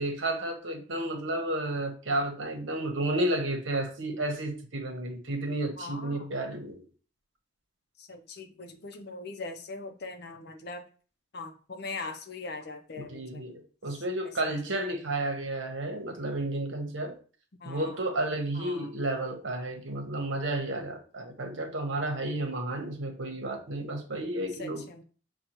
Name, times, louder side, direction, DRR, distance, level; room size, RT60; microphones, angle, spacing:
voice 1, 0.0-6.8 13.0-17.2 17.6-24.8, right 1 dB, 75° right, 4 dB, 1.0 m, -32 dB
voice 2, 5.8-6.3 8.0-10.8 11.3-13.5 14.4-14.6 17.6-18.0 18.5-18.9 24.6-25.0, left 3 dB, 55° left, 7 dB, 0.6 m, -41 dB
6.7 x 2.3 x 3.0 m, 0.39 s
head